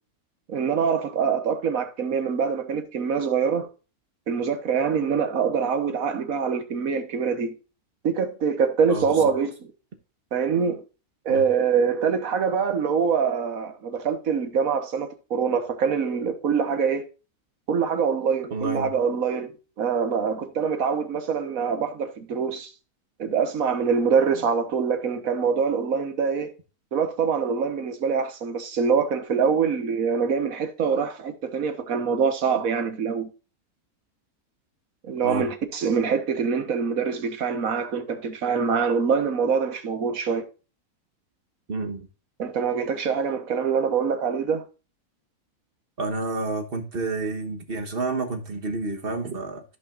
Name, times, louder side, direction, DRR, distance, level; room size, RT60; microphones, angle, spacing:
voice 1, 0.5-3.7 4.3-7.5 8.0-9.5 10.3-10.8 11.2-17.0 17.7-19.5 19.8-22.7 23.2-26.5 26.9-33.3 35.0-40.4 42.4-44.6, right 6 dB, 65° right, 1.6 m, -24 dB
voice 2, 8.9-9.3 11.3-11.4 18.5-18.9 35.2-35.5 41.7-42.1 46.0-49.6, right 3 dB, 40° right, 1.4 m, -29 dB
14.5 x 5.4 x 2.5 m
omnidirectional pair, 1.6 m